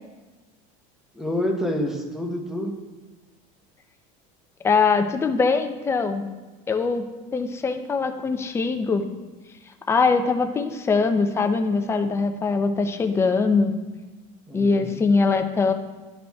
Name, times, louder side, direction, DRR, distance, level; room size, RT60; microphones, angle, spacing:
voice 1, 1.1-2.7 14.5-15.0, left 1 dB, ahead, 1 dB, 0.9 m, -28 dB
voice 2, 4.6-6.2 6.7-7.0 7.3-9.0 9.9-13.7 14.5-15.7, left 4 dB, 15° left, 6 dB, 0.5 m, -22 dB
12.5 x 5.1 x 2.3 m, 1.2 s
cardioid pair, 155°, 18 cm